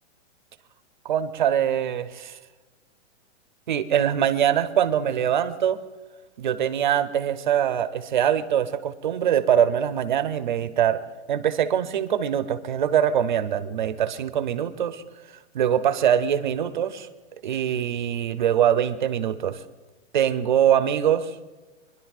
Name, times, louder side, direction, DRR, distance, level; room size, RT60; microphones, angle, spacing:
voice 1, 1.0-2.4 3.7-5.8 6.4-11.0 11.3-15.0 15.5-17.1 17.4-19.6 20.1-21.3, right 9 dB, 40° right, 11 dB, 0.6 m, -23 dB
25.5 x 11.0 x 2.4 m, 1.2 s
hypercardioid pair, 180°, 36 cm